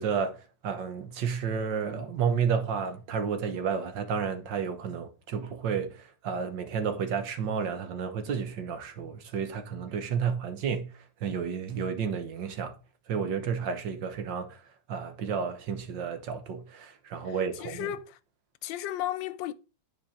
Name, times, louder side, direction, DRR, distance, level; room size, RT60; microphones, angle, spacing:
voice 1, 0.0-12.8 13.1-14.6 14.9-17.9, right 6 dB, 70° right, 1.8 m, -31 dB
voice 2, 17.6-18.2 18.6-19.5, left 12 dB, 80° left, 1.3 m, -34 dB
10.0 x 4.6 x 4.9 m
omnidirectional pair, 2.0 m